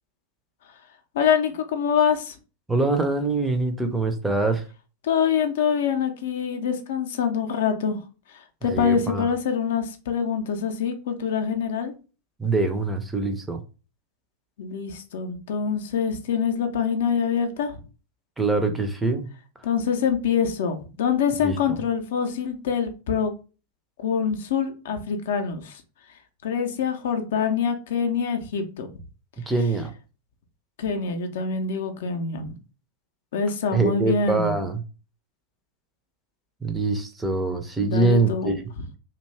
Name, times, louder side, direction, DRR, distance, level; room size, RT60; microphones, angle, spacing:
voice 1, 1.1-2.4 5.0-8.0 8.3-11.9 14.6-17.8 19.6-23.3 24.0-25.8 26.4-28.9 30.8-32.6 33.3-34.5 37.8-38.5, left 6 dB, 55° left, 0.5 m, -25 dB
voice 2, 2.7-4.6 8.7-9.3 12.4-13.6 18.4-19.3 21.4-21.6 29.5-29.9 33.7-34.8 36.6-38.6, right 3 dB, 10° right, 0.4 m, -24 dB
2.5 x 2.2 x 3.1 m
figure-of-eight pair, 90°, 0 cm